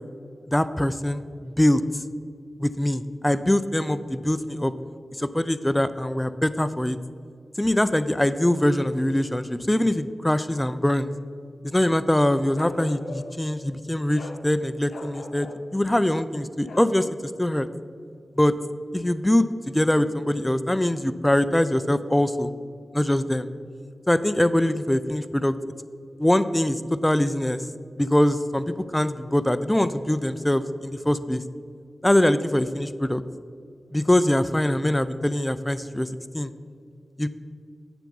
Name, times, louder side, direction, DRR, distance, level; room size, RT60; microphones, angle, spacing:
voice 1, 0.5-1.8 2.6-4.7 5.2-7.0 7.6-11.1 11.6-15.5 15.7-17.7 18.4-18.6 18.9-22.5 22.9-23.5 24.1-25.5 26.2-27.6 28.0-31.4 32.0-33.2 33.9-36.1 36.3-36.5 37.2-37.3, left 1 dB, 15° left, 13 dB, 0.5 m, -23 dB
Bark, 12.6-13.5 14.1-14.4 14.9-15.6 16.7-16.9, left 2 dB, 90° left, 0.7 m, -39 dB
9.0 x 7.1 x 5.4 m, 2.3 s
cardioid pair, 45°, 0 cm